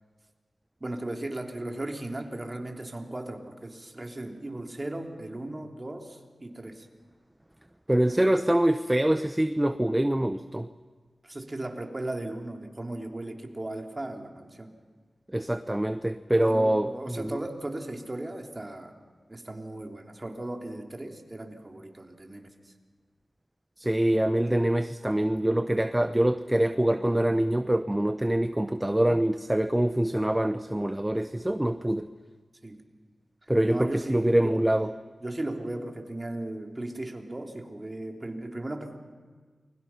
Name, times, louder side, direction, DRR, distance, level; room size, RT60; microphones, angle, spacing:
voice 1, 0.8-6.9 11.2-14.7 16.4-18.9 19.3-22.7 32.6-32.9 33.7-34.6 35.2-39.0, right 1 dB, 30° right, 3 dB, 3.1 m, -37 dB
voice 2, 7.9-10.7 15.3-16.9 17.2-17.4 23.8-32.1 33.5-34.9, right 1 dB, 15° right, 10 dB, 0.8 m, -25 dB
29.0 x 22.0 x 5.8 m, 1.5 s
cardioid pair, 50°, 0 cm